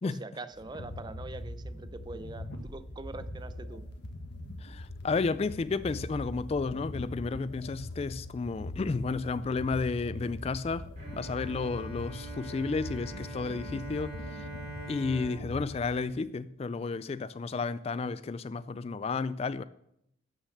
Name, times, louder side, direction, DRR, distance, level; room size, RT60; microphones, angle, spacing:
voice 1, 0.0-3.8, right 3 dB, 20° right, 0.5 m, -43 dB
sound 1, 0.5-16.2, left 1 dB, 60° left, 1.6 m, -42 dB
voice 2, 4.6-10.9 11.1-14.5 14.9-19.6, left 4 dB, 30° left, 0.3 m, -32 dB
Bowed string instrument, 11.0-17.1, right 2 dB, 40° right, 3.5 m, -45 dB
13.0 x 6.5 x 6.4 m
head